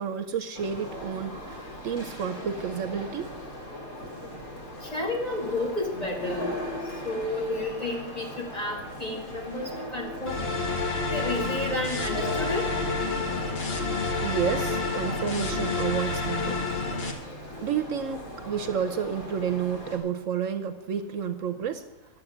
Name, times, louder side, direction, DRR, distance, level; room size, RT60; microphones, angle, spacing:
voice 1, 0.0-1.4 1.8-3.4 14.2-16.6 17.6-21.8, right 7 dB, 70° right, 9 dB, 1.0 m, -30 dB
sound 1, 0.5-20.0, left 1 dB, 85° left, 2.7 m, -39 dB
voice 2, 4.8-6.5 7.0-10.4 11.1-12.6, left 2 dB, 30° left, -1 dB, 2.3 m, -31 dB
sound 2, 10.3-17.1, left 3 dB, 45° left, 1.4 m, -29 dB
11.0 x 7.5 x 7.9 m, 0.96 s
omnidirectional pair, 1.5 m